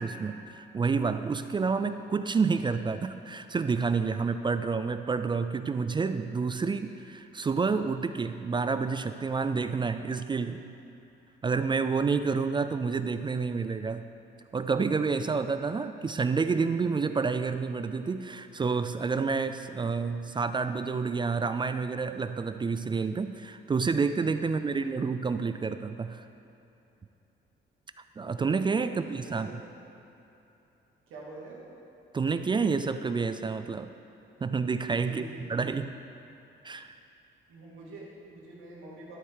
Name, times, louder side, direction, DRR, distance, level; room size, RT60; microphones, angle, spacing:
voice 1, 0.0-10.6 11.4-14.1 14.5-26.2 28.2-29.6 32.1-33.9 34.4-35.2 35.5-35.9 36.6-36.9, right 4 dB, 25° right, 10 dB, 0.3 m, -29 dB
voice 2, 24.5-25.1 28.8-29.6 31.1-31.6 35.0-35.8 37.5-39.2, right 2 dB, 85° right, -5 dB, 2.3 m, -47 dB
12.0 x 5.3 x 4.7 m, 2.9 s
cardioid pair, 90°, 20 cm